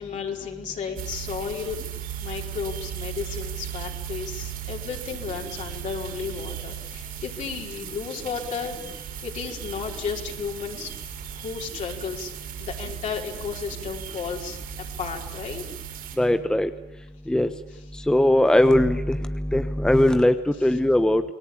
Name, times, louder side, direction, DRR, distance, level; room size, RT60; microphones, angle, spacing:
voice 1, 0.0-1.8 2.2-10.9 11.3-12.3 12.6-15.6, left 6 dB, 45° left, 0 dB, 5.0 m, -33 dB
sound 1, 1.0-16.2, right 11 dB, 55° right, 7.0 m, -37 dB
voice 2, 16.2-16.7 17.3-17.5 18.1-21.2, left 1 dB, 5° left, 10 dB, 1.1 m, -20 dB
29.5 x 19.5 x 8.9 m, 0.93 s
supercardioid pair, 105°, 18 cm